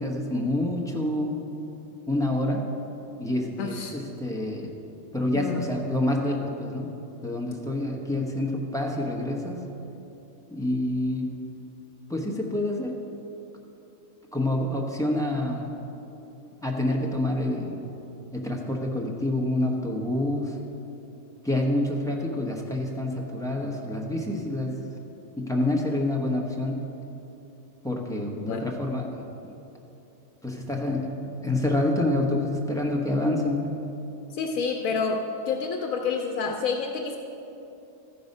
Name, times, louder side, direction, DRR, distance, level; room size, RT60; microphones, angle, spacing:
voice 1, 0.0-1.5 2.1-2.6 3.2-4.7 5.1-6.9 7.2-9.6 10.5-11.3 12.1-12.9 14.3-15.7 16.6-17.9 18.3-20.6 21.4-24.7 25.4-26.8 27.8-29.2 29.4-29.5 30.4-31.2 31.4-33.8, left 1 dB, 5° left, -1 dB, 0.8 m, -27 dB
voice 2, 3.6-3.9 5.3-5.7 28.4-28.6 34.3-37.2, left 5 dB, 85° left, 3 dB, 1.0 m, -28 dB
13.5 x 5.5 x 5.3 m, 2.9 s
omnidirectional pair, 1.4 m